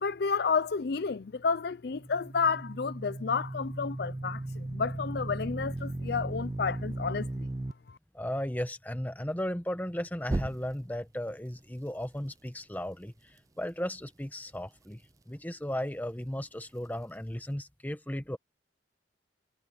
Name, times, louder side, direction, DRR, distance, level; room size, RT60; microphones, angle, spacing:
voice 1, 0.0-7.5 7.9-8.0, left 5 dB, 55° left, 0.5 m, -31 dB
sound 1, 1.9-7.7 10.2-11.0, right 2 dB, 20° right, 0.3 m, -36 dB
voice 2, 8.1-13.1 13.6-15.0 15.3-18.4, equal, 10° left, 1.2 m, -35 dB
head